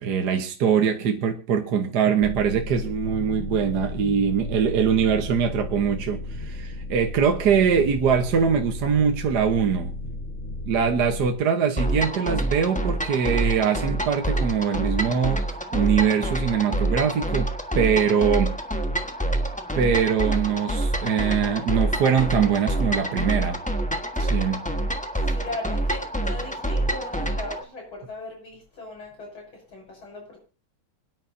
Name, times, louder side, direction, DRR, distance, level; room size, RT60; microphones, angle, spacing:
voice 1, 0.0-9.9 10.6-15.5 15.7-18.6 19.7-23.6 24.2-24.7, right 7 dB, 55° right, 1.6 m, -23 dB
sound 1, 2.2-11.3, left 1 dB, 40° left, 2.0 m, -34 dB
sound 2, 11.8-27.6, right 1 dB, 5° left, 1.0 m, -27 dB
voice 2, 25.2-30.4, left 2 dB, 85° left, 7.3 m, -38 dB
26.0 x 10.0 x 2.7 m
omnidirectional pair, 2.2 m